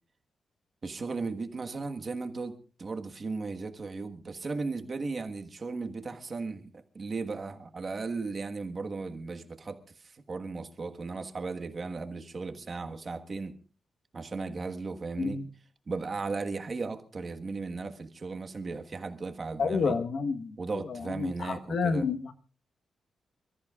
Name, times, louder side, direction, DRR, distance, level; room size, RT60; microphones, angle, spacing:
voice 1, 0.8-13.5 14.1-15.4 15.9-19.9 20.6-22.1, right 4 dB, 35° right, 6 dB, 1.4 m, -36 dB
voice 2, 19.6-20.5 20.9-22.3, left 4 dB, 65° left, 8 dB, 1.3 m, -29 dB
28.0 x 14.0 x 2.4 m, 0.37 s
wide cardioid pair, 140°, 0 cm